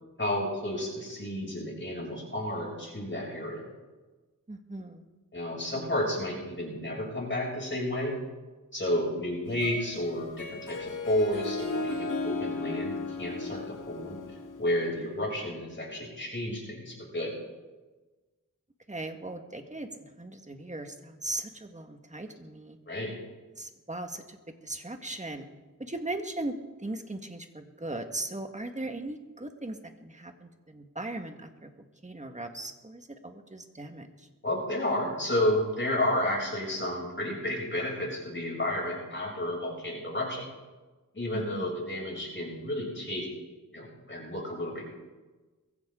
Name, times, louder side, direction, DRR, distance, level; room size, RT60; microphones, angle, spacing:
voice 1, 0.2-3.7 5.3-8.2 8.7-14.2 14.6-17.3 22.9-23.1 34.4-40.5 41.1-43.3 43.7-44.8, left 1 dB, 35° left, -3 dB, 7.2 m, -31 dB
voice 2, 4.5-5.0 15.4-15.5 18.9-22.8 23.6-24.4 24.6-25.5 25.8-31.7 32.0-34.3 41.3-41.6, right 2 dB, 20° right, 5 dB, 1.8 m, -38 dB
Harp, 9.5-15.0, left 3 dB, 65° left, 2.2 m, -36 dB
22.0 x 15.5 x 3.9 m, 1.2 s
wide cardioid pair, 70°, 33 cm